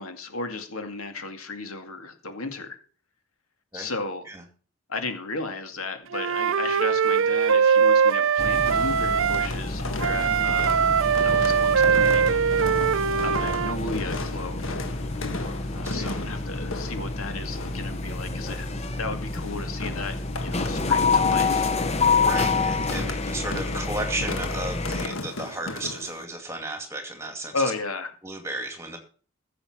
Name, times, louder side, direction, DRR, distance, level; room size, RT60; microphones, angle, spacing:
voice 1, 0.0-2.8 3.7-4.3 4.9-10.8 11.2-12.4 13.2-14.7 15.7-18.7 19.0-21.7 27.5-28.1, left 3 dB, 85° left, 6 dB, 2.2 m, -34 dB
Wind instrument woodwind instrument, 6.1-9.5 10.0-13.8, right 6 dB, 65° right, 0.5 m, -21 dB
sound 1, 8.4-25.1, left 3 dB, 30° left, 0.8 m, -28 dB
sound 2, 8.5-26.2, left 3 dB, 70° left, 1.5 m, -37 dB
voice 2, 15.8-16.2 22.2-27.6 28.2-29.0, right 2 dB, 10° right, 5 dB, 2.4 m, -34 dB
15.5 x 7.5 x 6.1 m, 0.42 s
head